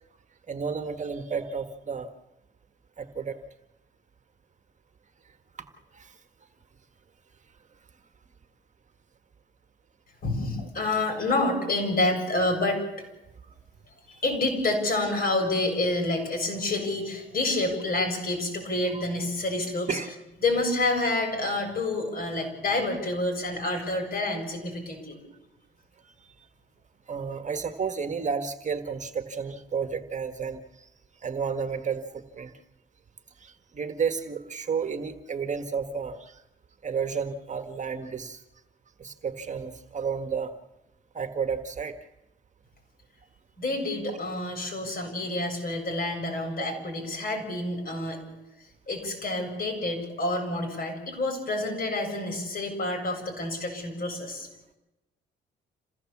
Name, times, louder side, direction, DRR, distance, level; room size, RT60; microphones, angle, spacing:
voice 1, 0.5-2.1 3.0-3.4 5.9-6.2 10.6-10.7 18.9-19.0 19.9-20.1 26.0-26.1 27.1-30.9 31.2-32.5 33.4-36.4 36.8-38.4 39.0-40.5 41.1-41.9, right 6 dB, 35° right, 7 dB, 1.5 m, -32 dB
voice 2, 10.2-12.8 14.1-20.0 20.4-25.2 43.6-48.2 48.9-54.5, left 2 dB, 45° left, 4 dB, 7.3 m, -28 dB
27.5 x 16.0 x 7.2 m, 0.98 s
cardioid pair, 90°, 20 cm